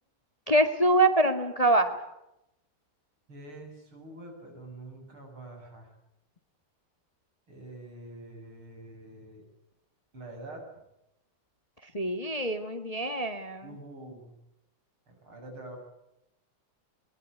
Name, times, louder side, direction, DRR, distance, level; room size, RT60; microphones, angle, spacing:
voice 1, 0.5-2.0 11.9-13.7, right 1 dB, 20° left, 8 dB, 1.5 m, -25 dB
voice 2, 3.3-5.9 7.5-9.4 10.1-10.7 13.6-14.3 15.1-15.8, right 2 dB, 70° right, 3 dB, 8.6 m, -46 dB
22.5 x 22.5 x 9.6 m, 0.85 s
omnidirectional pair, 2.4 m